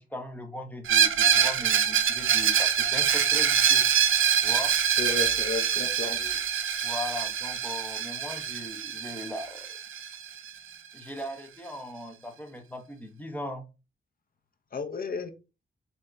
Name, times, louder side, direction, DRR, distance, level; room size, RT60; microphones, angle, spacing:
voice 1, 0.0-3.8 4.4-4.7 6.0-6.4 6.8-9.8 10.9-13.6, left 1 dB, 10° left, 0.9 m, -39 dB
Screech, 0.9-10.5, right 8 dB, 75° right, 0.5 m, -25 dB
voice 2, 5.0-6.2 14.7-15.3, left 4 dB, 45° left, 0.7 m, -33 dB
3.7 x 2.8 x 3.3 m
cardioid pair, 80°, 21 cm